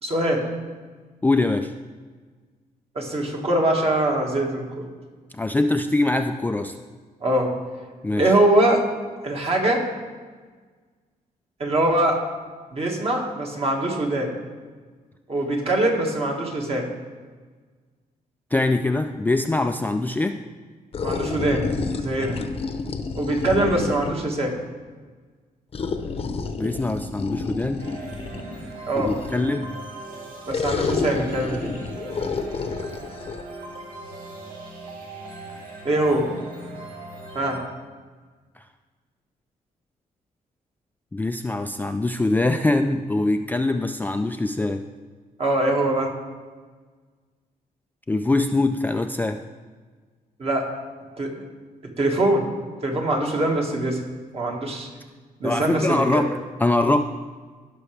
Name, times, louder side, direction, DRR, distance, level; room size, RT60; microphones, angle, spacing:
voice 1, 0.0-0.5 2.9-4.7 7.2-7.5 8.2-8.8 9.2-9.8 11.6-12.2 12.7-14.3 15.3-16.9 21.0-21.7 22.0-22.4 23.2-24.5 28.9-29.1 30.5-31.7 35.8-36.3 37.3-37.6 45.4-46.1 50.4-50.7 51.2-51.4 52.0-52.5 52.8-54.0 54.3-54.9 55.4-56.2, right 1 dB, 40° right, 0 dB, 1.8 m, -22 dB
voice 2, 1.2-1.7 5.3-6.8 8.0-8.3 18.5-20.4 26.6-27.9 29.0-29.8 41.1-44.9 48.1-49.4 55.4-57.0, left 2 dB, 10° left, 6 dB, 0.3 m, -23 dB
sound 1, 20.9-24.3 25.7-29.5 30.5-33.4, left 4 dB, 40° left, 0.8 m, -30 dB
sound 2, 27.8-37.6, right 2 dB, 75° right, 1.8 m, -39 dB
16.0 x 6.0 x 3.3 m, 1.5 s
cardioid pair, 130°, 15 cm